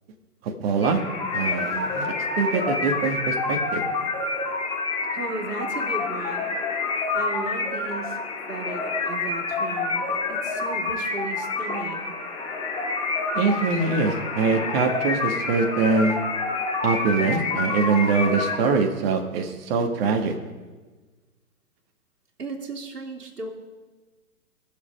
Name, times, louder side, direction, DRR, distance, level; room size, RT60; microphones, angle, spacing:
voice 1, 0.4-1.0 1.3-3.8 13.3-16.2 16.8-20.4, right 4 dB, 40° right, 3 dB, 1.7 m, -23 dB
sound 1, 0.8-18.6, left 3 dB, 10° left, 1.7 m, -28 dB
voice 2, 5.1-6.6 7.1-8.2 8.5-12.2 22.4-23.5, right 3 dB, 85° right, -1 dB, 2.4 m, -35 dB
21.0 x 7.1 x 5.5 m, 1.3 s
hypercardioid pair, 135°, 45 cm